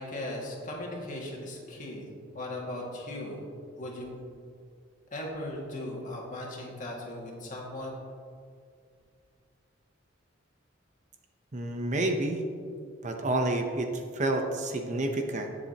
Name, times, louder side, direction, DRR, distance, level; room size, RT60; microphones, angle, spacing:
voice 1, 0.0-2.1 2.3-3.4 3.8-4.1 5.1-8.0, left 1 dB, 40° left, -2 dB, 2.1 m, -38 dB
voice 2, 11.5-12.4 13.0-15.5, right 2 dB, 40° right, 4 dB, 0.8 m, -29 dB
19.0 x 7.3 x 2.9 m, 2.2 s
head